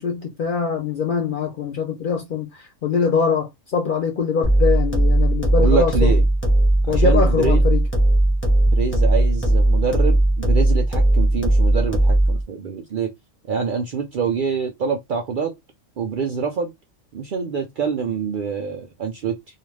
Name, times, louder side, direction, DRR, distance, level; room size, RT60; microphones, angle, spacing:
voice 1, 0.0-6.1 6.9-7.8, left 6 dB, 60° left, 0.5 m, -23 dB
sound 1, 4.4-12.4, right 1 dB, 10° left, 0.8 m, -17 dB
voice 2, 5.6-6.2 6.9-7.6 8.6-13.1 13.5-15.5 16.0-16.7 17.1-19.4, right 5 dB, 65° right, 0.5 m, -25 dB
2.4 x 2.3 x 3.1 m
omnidirectional pair, 1.3 m